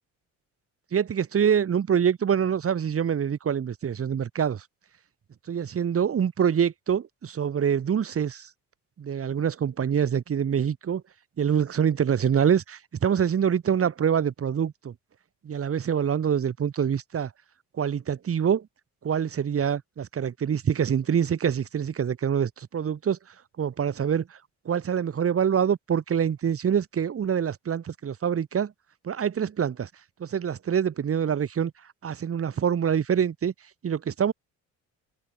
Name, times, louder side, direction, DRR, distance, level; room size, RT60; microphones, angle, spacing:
voice 1, 0.9-4.6 5.5-8.5 9.0-11.0 11.4-14.9 15.4-17.3 17.8-18.7 19.0-23.2 23.6-24.4 24.6-28.7 29.0-29.9 30.2-31.7 32.0-33.5 33.8-34.3, right 8 dB, 45° right, 6.1 m, -25 dB
cardioid pair, 110°, 31 cm